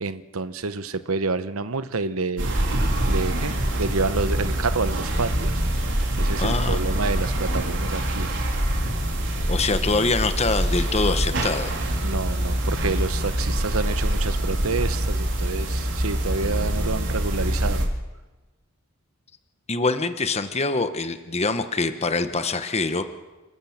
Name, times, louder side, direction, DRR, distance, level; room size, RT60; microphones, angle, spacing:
voice 1, 0.0-2.7 3.1-5.6 6.2-8.3 12.0-17.9, right 4 dB, 85° right, 12 dB, 1.0 m, -28 dB
sound 1, 2.4-17.9, right 1 dB, 60° right, 3.5 m, -25 dB
voice 2, 6.4-6.8 9.5-11.7 19.7-23.0, left 3 dB, 30° left, 10 dB, 1.1 m, -24 dB
29.0 x 13.5 x 7.3 m, 1.2 s
head